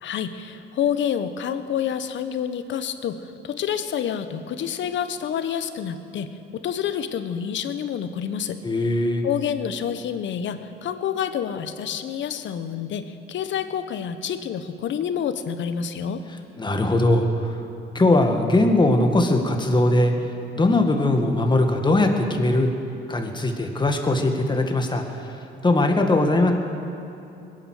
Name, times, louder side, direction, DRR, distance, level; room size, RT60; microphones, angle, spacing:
voice 1, 0.0-9.0 9.2-16.2, left 8 dB, 70° left, 10 dB, 1.0 m, -28 dB
voice 2, 8.6-9.3 16.6-17.6 17.9-20.1 20.5-22.7 23.1-25.0 25.6-26.5, left 2 dB, 20° left, 4 dB, 1.9 m, -20 dB
21.5 x 9.7 x 6.5 m, 2.9 s
cardioid pair, 90°, 20 cm